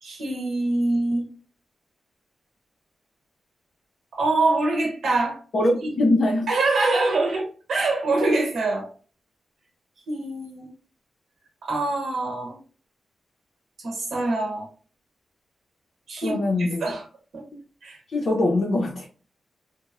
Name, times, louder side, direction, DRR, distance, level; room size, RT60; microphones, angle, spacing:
voice 1, 0.0-1.3 4.1-5.4 6.5-8.9 10.1-10.7 11.6-12.6 13.8-14.7 16.1-17.0 17.3-17.4 17.8-18.0, right 2 dB, 70° right, 1 dB, 1.0 m, -24 dB
voice 2, 5.5-6.5 16.2-16.8 17.5-17.6 18.1-19.1, left 2 dB, 55° left, -2 dB, 0.5 m, -22 dB
3.0 x 2.0 x 2.3 m, 0.39 s
wide cardioid pair, 165°, 0 cm